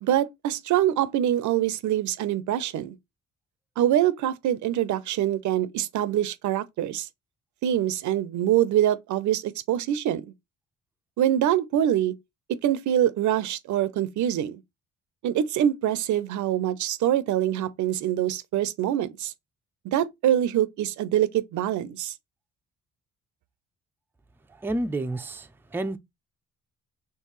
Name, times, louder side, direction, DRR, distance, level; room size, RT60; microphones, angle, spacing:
voice 1, 0.0-3.0 3.8-7.1 7.6-10.2 11.2-12.1 12.5-14.6 15.2-19.3 19.8-22.1, right 11 dB, 75° right, 0.6 m, -24 dB
voice 2, 24.6-25.5 25.7-26.0, right 2 dB, 5° right, 0.4 m, -29 dB
4.6 x 3.2 x 3.0 m
cardioid pair, 90°, 30 cm